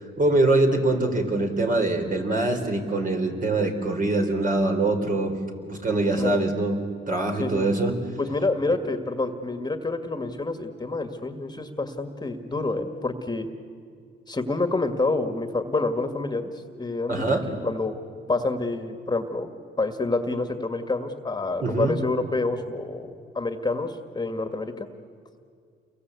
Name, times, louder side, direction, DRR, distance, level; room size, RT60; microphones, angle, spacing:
voice 1, 0.2-5.4 5.7-7.9 8.7-8.8 17.1-17.4 21.6-22.0, right 2 dB, 45° right, 3 dB, 4.4 m, -23 dB
voice 2, 8.2-13.5 14.3-16.5 16.8-17.9 18.3-19.5 19.8-24.9, left 3 dB, 20° left, 8 dB, 1.9 m, -28 dB
29.5 x 23.0 x 8.3 m, 2.3 s
cardioid pair, 90°, 20 cm